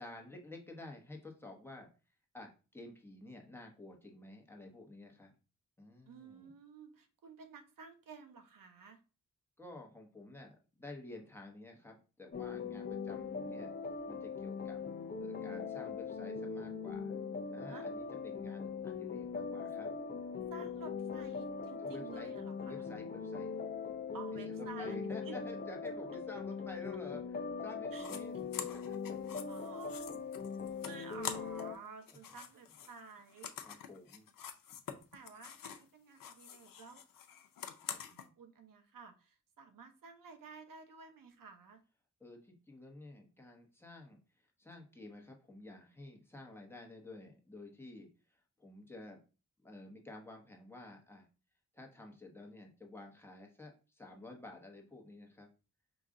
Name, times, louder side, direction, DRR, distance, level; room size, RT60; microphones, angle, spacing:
voice 1, 0.0-1.9 2.3-5.3 5.8-6.5 9.6-13.7 14.1-14.8 15.2-17.2 17.5-19.9 21.8-22.3 22.6-23.6 24.5-29.2 33.6-34.3 42.2-49.2 49.6-51.3 51.7-55.5, left 2 dB, 5° left, 0 dB, 0.9 m, -51 dB
voice 2, 6.0-9.0 17.7-17.9 20.5-22.9 24.1-25.4 27.9-28.1 29.5-30.0 30.8-33.8 35.1-37.0 38.1-41.8, right 5 dB, 90° right, 7 dB, 0.8 m, -52 dB
sound 1, 12.3-31.8, left 5 dB, 30° left, 0.4 m, -41 dB
sound 2, 28.0-28.2 28.5-31.8 32.0-35.9 36.2-38.3, left 8 dB, 85° left, 0.6 m, -46 dB
5.0 x 2.4 x 3.6 m, 0.34 s
wide cardioid pair, 120°, 32 cm